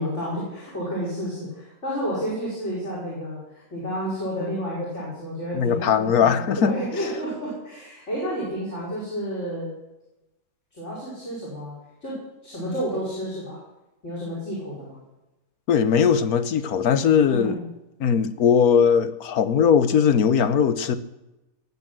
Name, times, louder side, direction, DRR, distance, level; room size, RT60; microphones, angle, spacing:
voice 1, 0.0-9.7 10.7-11.7 12.0-13.6 14.0-15.0 17.3-17.6, equal, 50° left, 5.4 m, -30 dB
voice 2, 5.5-6.8 15.7-17.6 18.0-21.0, left 7 dB, 85° left, 1.4 m, -19 dB
18.0 x 8.1 x 7.7 m
omnidirectional pair, 1.5 m